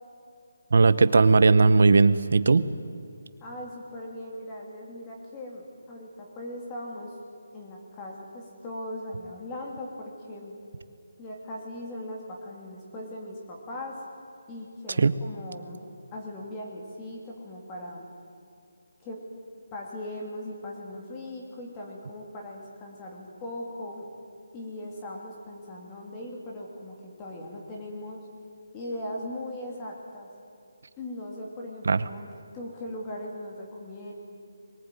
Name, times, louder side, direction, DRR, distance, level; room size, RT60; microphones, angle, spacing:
voice 1, 0.7-2.7 15.0-15.1 31.9-32.0, right 4 dB, 55° right, 14 dB, 1.0 m, -18 dB
voice 2, 3.4-7.1 7.5-10.6 11.2-14.0 14.5-15.8 16.1-18.1 19.0-19.2 19.7-24.1 24.5-28.2 28.7-30.3 31.0-34.1, left 1 dB, 15° left, -1 dB, 2.9 m, -39 dB
23.0 x 19.0 x 9.3 m, 2.4 s
hypercardioid pair, 170°, 0 cm